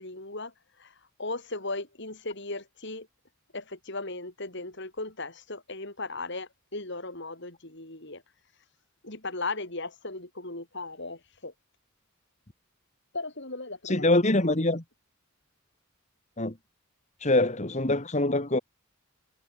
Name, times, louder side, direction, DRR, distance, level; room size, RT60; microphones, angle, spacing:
voice 1, 0.0-3.1 3.5-8.2 9.0-11.5 13.1-14.5, left 2 dB, 55° left, 6.4 m, -37 dB
voice 2, 13.8-14.8 16.4-16.6 17.2-18.6, left 2 dB, 35° left, 2.3 m, -24 dB
head